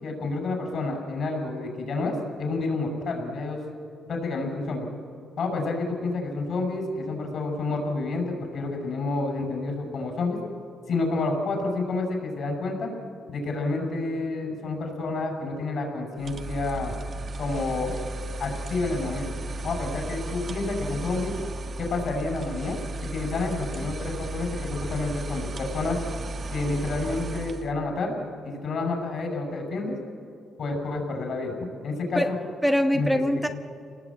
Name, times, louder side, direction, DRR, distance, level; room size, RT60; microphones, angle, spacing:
voice 1, 0.0-3.6 4.1-4.9 5.4-10.4 10.9-12.9 13.3-16.9 17.4-17.9 18.4-19.3 19.6-21.3 21.8-22.8 23.1-26.0 26.5-28.2 28.4-30.0 30.6-32.4 32.9-33.1, left 3 dB, 60° left, 3 dB, 6.3 m, -29 dB
sound 1, 16.2-27.7, right 2 dB, 45° right, 1.4 m, -35 dB
voice 2, 32.1-33.5, equal, ahead, 5 dB, 1.1 m, -24 dB
29.0 x 19.0 x 8.6 m, 2.5 s
cardioid pair, 90°, 0 cm